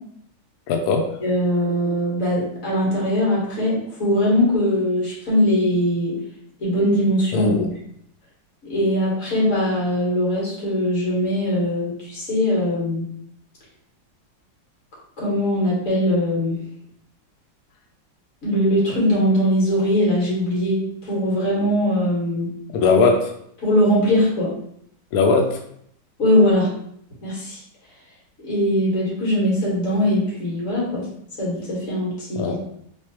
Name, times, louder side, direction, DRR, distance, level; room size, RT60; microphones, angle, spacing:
voice 1, 0.7-1.1 7.3-7.7 22.7-23.3 25.1-25.6 32.4-32.6, left 4 dB, 85° left, 2 dB, 0.8 m, -19 dB
voice 2, 1.2-6.2 6.6-7.7 8.6-13.1 15.2-16.6 18.4-22.5 23.6-24.5 26.2-26.7 27.2-27.6 28.4-31.1 31.4-32.6, equal, 45° left, -6 dB, 1.8 m, -21 dB
3.5 x 3.2 x 3.0 m, 0.71 s
omnidirectional pair, 2.2 m